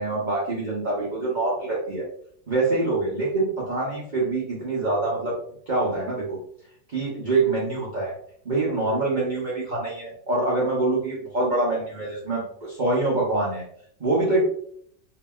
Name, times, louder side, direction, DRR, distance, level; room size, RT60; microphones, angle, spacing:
voice 1, 0.0-2.0 2.5-5.3 5.7-6.4 6.9-8.1 8.4-13.6 14.0-14.4, right 2 dB, 85° right, -6 dB, 0.4 m, -25 dB
2.8 x 2.8 x 2.2 m, 0.64 s
omnidirectional pair, 1.9 m